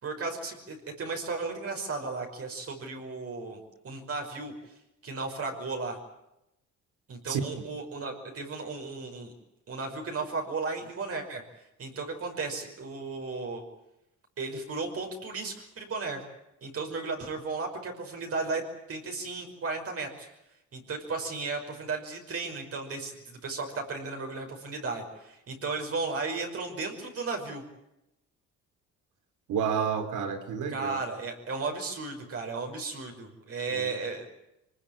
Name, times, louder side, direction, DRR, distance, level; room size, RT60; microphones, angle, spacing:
voice 1, 0.0-3.6 3.8-4.5 5.0-6.0 7.1-9.3 9.7-11.4 11.8-13.6 14.4-16.2 16.6-18.6 18.9-20.3 20.7-27.6 30.7-34.3, right 3 dB, 50° right, 2 dB, 5.7 m, -35 dB
voice 2, 29.5-31.0 33.7-33.9, right 7 dB, 85° right, 8 dB, 3.4 m, -30 dB
23.5 x 20.5 x 9.0 m, 0.87 s
cardioid pair, 90°, 30 cm